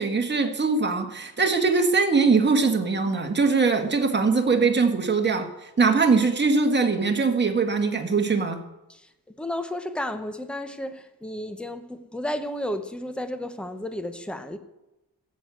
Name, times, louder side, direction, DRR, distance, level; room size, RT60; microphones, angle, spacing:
voice 1, 0.0-5.5 5.8-8.6, right 4 dB, 30° right, 1.6 m, -22 dB
voice 2, 8.9-14.6, left 1 dB, 5° left, 0.9 m, -33 dB
14.0 x 8.4 x 7.9 m
wide cardioid pair, 160°, 37 cm